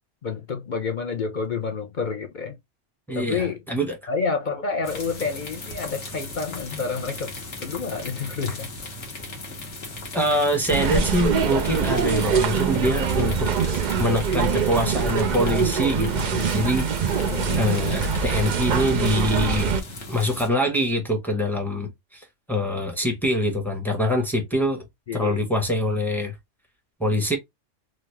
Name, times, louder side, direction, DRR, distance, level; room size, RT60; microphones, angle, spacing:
voice 1, 0.2-2.6 3.1-3.6 4.1-7.3 7.6-8.7 17.3-17.6 25.1-25.4, left 5 dB, 50° left, 0.6 m, -29 dB
voice 2, 3.1-4.0 10.1-17.3 17.5-19.7 20.1-24.8 25.1-26.3 27.0-27.4, equal, ahead, 0.9 m, -24 dB
sound 1, 4.8-20.5, left 2 dB, 65° left, 1.4 m, -37 dB
sound 2, 10.7-19.8, right 6 dB, 60° right, 0.5 m, -24 dB
3.1 x 2.4 x 3.2 m
omnidirectional pair, 1.3 m